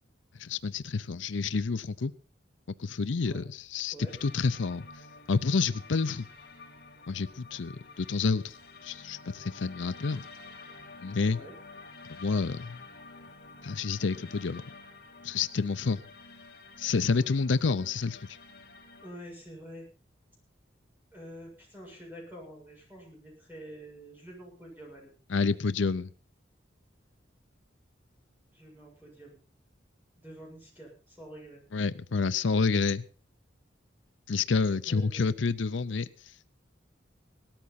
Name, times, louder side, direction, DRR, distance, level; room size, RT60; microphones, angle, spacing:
voice 1, 0.4-2.1 2.8-3.9 4.2-4.9 5.3-6.3 7.1-8.6 8.8-10.2 11.0-11.4 12.2-12.8 13.6-14.6 15.2-16.0 16.8-18.3 25.3-26.1 31.7-33.0 34.3-36.3, left 4 dB, 80° left, 14 dB, 0.6 m, -29 dB
sound 1, 4.1-19.1, left 3 dB, 55° left, 2.8 m, -50 dB
voice 2, 19.0-19.9 21.1-25.1 28.5-29.4 30.2-31.6 34.9-35.2, right 1 dB, 10° right, -2 dB, 7.0 m, -47 dB
17.5 x 13.5 x 4.1 m, 0.38 s
head